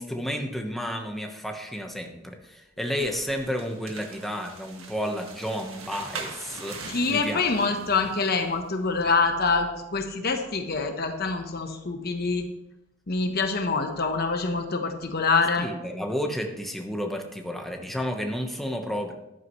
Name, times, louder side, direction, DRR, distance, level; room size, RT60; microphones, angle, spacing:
voice 1, 0.0-7.9 15.6-19.1, equal, ahead, 2 dB, 1.2 m, -32 dB
sound 1, 3.0-8.5, right 4 dB, 80° right, 1.8 m, -42 dB
voice 2, 6.9-12.4 13.1-15.7, left 4 dB, 50° left, 5 dB, 1.0 m, -25 dB
13.5 x 11.5 x 3.2 m, 0.97 s
head